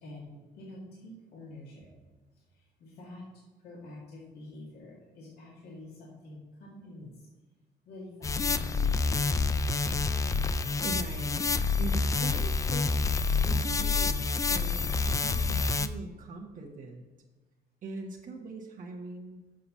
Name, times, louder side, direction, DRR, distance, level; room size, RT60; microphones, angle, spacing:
voice 1, 0.0-1.9 2.5-3.3 3.6-7.1 7.9-9.3 9.6-10.0, left 2 dB, 70° left, -4 dB, 2.1 m, -47 dB
sound 1, 8.2-15.9, left 4 dB, 20° left, 0.4 m, -28 dB
voice 2, 10.8-11.5 11.8-12.9 13.4-17.0 17.8-19.4, right 3 dB, 50° right, 0 dB, 1.1 m, -41 dB
7.6 x 5.8 x 5.5 m, 1.2 s
cardioid pair, 110°, 17 cm